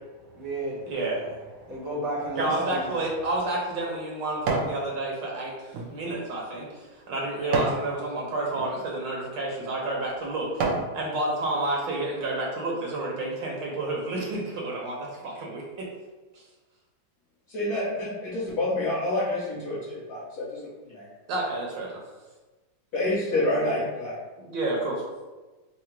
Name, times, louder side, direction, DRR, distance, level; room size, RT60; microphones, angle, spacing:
voice 1, 0.1-3.0, right 1 dB, ahead, -7 dB, 0.6 m, -34 dB
voice 2, 0.9-1.2 2.4-10.5 10.9-15.9 21.3-22.0 24.5-25.0, right 2 dB, 70° right, -2 dB, 1.3 m, -30 dB
sound 1, 2.9-4.8 5.2-7.9 8.5-8.7 9.4-9.6 10.1-10.9 11.4-11.5, right 3 dB, 85° right, 0.7 m, -31 dB
voice 3, 17.5-21.1 22.9-24.1, left 1 dB, 60° left, -8 dB, 1.4 m, -28 dB
3.8 x 2.0 x 4.4 m, 1.2 s
omnidirectional pair, 2.2 m